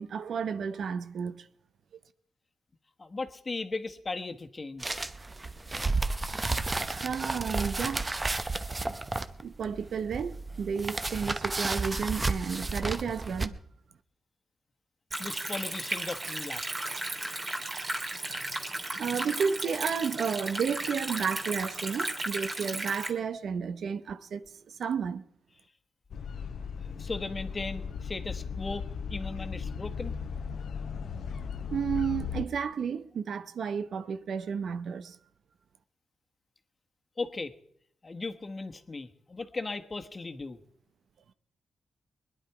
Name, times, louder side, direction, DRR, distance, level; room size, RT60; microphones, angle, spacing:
voice 1, 0.0-1.5 6.9-8.1 9.4-13.6 18.3-18.6 18.9-25.2 31.7-35.2, right 6 dB, 75° right, 0.7 m, -32 dB
voice 2, 3.0-5.0 15.2-16.6 26.8-30.2 37.2-37.5 38.0-40.6, left 3 dB, 35° left, 1.3 m, -37 dB
sound 1, 4.8-13.5, right 3 dB, 25° right, 0.8 m, -32 dB
Stream, 15.1-23.1, right 2 dB, 40° right, 3.1 m, -35 dB
sound 2, 26.1-32.5, left 6 dB, 75° left, 0.6 m, -37 dB
20.5 x 10.5 x 4.8 m
cardioid pair, 75°, 0 cm